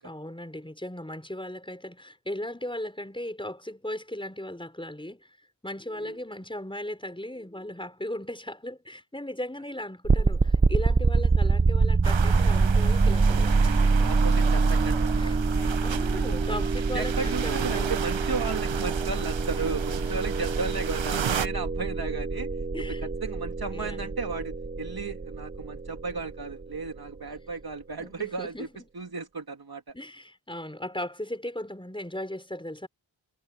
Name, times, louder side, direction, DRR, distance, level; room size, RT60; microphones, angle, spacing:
voice 1, 0.0-5.3 5.6-14.1 15.1-18.0 22.7-23.1 23.7-24.1 28.0-28.7 29.9-32.9, left 1 dB, 10° left, 5.6 m, -37 dB
sound 1, 10.0-27.0, right 4 dB, 20° right, 0.7 m, -25 dB
sound 2, 12.0-21.5, right 8 dB, 75° right, 1.1 m, -34 dB
voice 2, 14.0-15.4 15.9-16.5 16.9-22.5 22.9-28.7 28.9-29.9, right 4 dB, 50° right, 3.0 m, -35 dB
wide cardioid pair, 65°, 46 cm